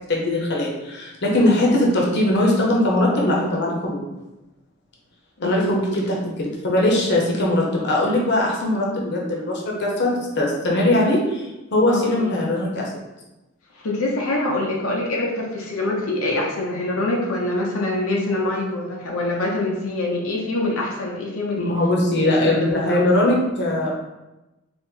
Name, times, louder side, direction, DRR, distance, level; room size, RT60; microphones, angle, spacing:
voice 1, 0.1-4.0 5.4-12.9 21.6-23.9, left 1 dB, 55° left, -2 dB, 0.7 m, -20 dB
voice 2, 5.4-5.8 11.9-12.3 13.8-21.8 22.1-23.2, left 2 dB, 90° left, -1 dB, 0.7 m, -25 dB
4.2 x 2.1 x 3.7 m, 1.0 s
head